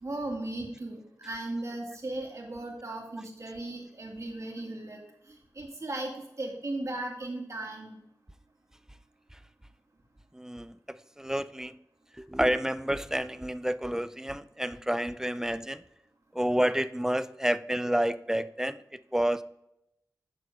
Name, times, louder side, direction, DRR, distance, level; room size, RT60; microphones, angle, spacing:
voice 1, 0.0-5.0 5.3-6.1 6.4-8.0, right 2 dB, 50° right, 0 dB, 2.3 m, -36 dB
voice 2, 10.3-11.7 12.2-15.8 16.4-18.8 19.1-19.4, right 1 dB, 10° right, 14 dB, 0.4 m, -29 dB
8.1 x 6.8 x 3.6 m, 0.84 s
wide cardioid pair, 70°, 7 cm